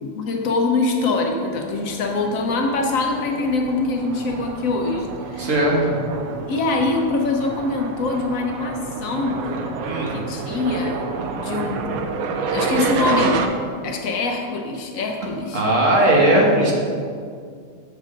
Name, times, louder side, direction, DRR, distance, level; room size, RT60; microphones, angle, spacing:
voice 1, 0.0-5.5 6.5-9.4 10.1-11.0 11.3-12.0 12.5-13.4 13.8-15.6, left 3 dB, 70° left, 2 dB, 1.2 m, -24 dB
sound 1, 1.8-13.5, right 5 dB, 90° right, 1.0 m, -29 dB
voice 2, 5.4-5.9 9.8-10.2 11.2-11.3 15.5-16.7, right 1 dB, 65° right, -3 dB, 1.7 m, -18 dB
7.4 x 6.4 x 3.8 m, 2.2 s
omnidirectional pair, 1.5 m